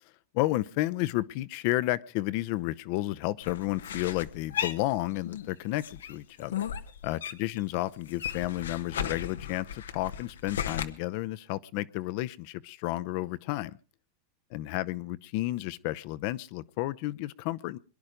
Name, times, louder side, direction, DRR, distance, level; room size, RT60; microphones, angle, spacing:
voice 1, 0.3-6.6 7.0-13.8 14.5-17.8, left 17 dB, 55° left, 16 dB, 0.8 m, -32 dB
sound 1, 3.4-5.5 5.8-7.6 7.9-10.8, left 9 dB, 90° left, 1.1 m, -35 dB
23.5 x 11.0 x 5.1 m, 0.36 s
hypercardioid pair, 115°, 0 cm